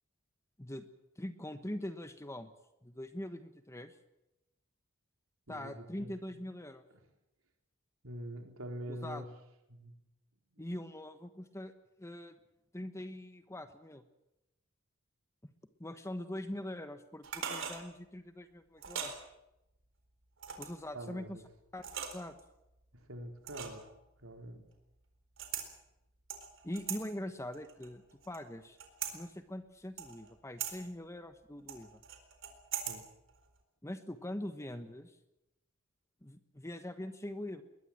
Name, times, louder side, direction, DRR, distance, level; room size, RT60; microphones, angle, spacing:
voice 1, 1.2-2.5 2.8-4.0 5.5-6.8 8.9-9.2 10.6-11.7 12.0-12.3 12.7-14.0 15.8-19.1 20.6-21.4 21.7-22.4 26.6-28.8 29.1-32.0 33.8-35.2 36.2-37.6, left 1 dB, 15° left, 9 dB, 1.3 m, -43 dB
voice 2, 5.5-6.1 8.0-9.3 9.7-10.0 10.5-10.6 20.9-21.4 22.9-23.9 24.2-24.6 32.9-33.0, equal, 80° right, 4 dB, 4.1 m, -45 dB
sound 1, 17.2-17.8 18.8-19.2 20.4-20.8 21.8-22.4 23.5-23.9 25.4-25.7 26.3-27.0 27.5-28.4 28.8-29.1 30.0-30.3 30.6-30.7 31.7-33.0 33.3-33.4, right 8 dB, 65° right, 4.1 m, -40 dB
21.5 x 21.0 x 7.6 m, 0.89 s
head